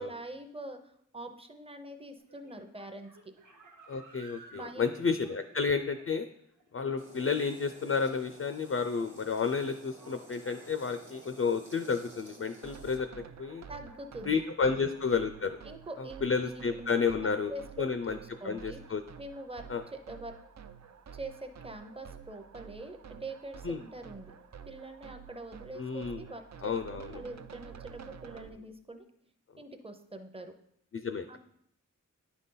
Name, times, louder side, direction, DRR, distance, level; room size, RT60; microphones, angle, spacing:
voice 1, 0.0-3.3 4.5-4.9 13.7-14.8 15.6-18.8 19.2-20.3 21.1-24.3 24.7-29.1 29.6-30.5 31.3-31.4, right 2 dB, 20° right, 7 dB, 0.7 m, -44 dB
sound 1, 2.2-11.5, right 2 dB, 80° right, 1.2 m, -58 dB
voice 2, 3.9-6.3 6.7-13.1 13.4-13.6 14.3-15.6 16.0-17.5 17.8-18.2 18.4-19.0 19.7-19.8 23.6-23.8 25.8-26.3 26.6-27.2 30.9-31.4, left 5 dB, 45° left, 10 dB, 0.4 m, -31 dB
sound 2, 7.0-13.0, right 2 dB, 40° right, 1.3 m, -53 dB
sound 3, 12.6-28.5, right 7 dB, 60° right, 0.4 m, -50 dB
9.9 x 4.0 x 3.8 m, 0.72 s
wide cardioid pair, 55°, 31 cm